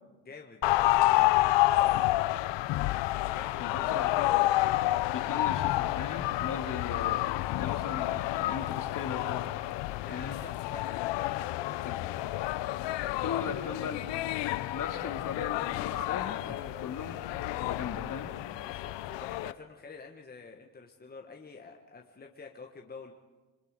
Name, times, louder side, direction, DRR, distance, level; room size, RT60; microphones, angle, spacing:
voice 1, 0.2-1.4 3.3-4.0 9.9-10.9 11.2-12.3 13.2-13.8 14.8-15.2 16.4-16.6 18.6-23.1, left 4 dB, 20° left, 2 dB, 1.5 m, -48 dB
sound 1, 0.6-19.5, left 16 dB, 75° left, 0.7 m, -29 dB
voice 2, 3.6-4.4 5.1-7.2 7.5-9.4 10.1-10.4 11.8-12.1 13.2-14.0 14.7-18.3, left 6 dB, 45° left, 4 dB, 2.8 m, -38 dB
27.5 x 22.0 x 5.2 m, 1.3 s
cardioid pair, 110°, 43 cm